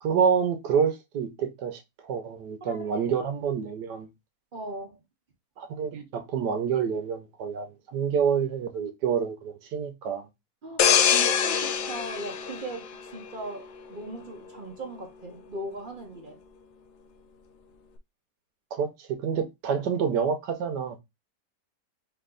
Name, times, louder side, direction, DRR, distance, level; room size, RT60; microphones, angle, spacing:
voice 1, 0.0-4.1 5.6-10.3 18.7-21.0, right 7 dB, 80° right, 1.4 m, -28 dB
voice 2, 2.6-3.1 4.5-5.0 10.6-16.4, right 1 dB, 40° right, 0.8 m, -39 dB
sound 1, 10.8-13.5 13.9-14.2, left 8 dB, 80° left, 1.2 m, -24 dB
4.5 x 2.7 x 3.8 m
omnidirectional pair, 1.8 m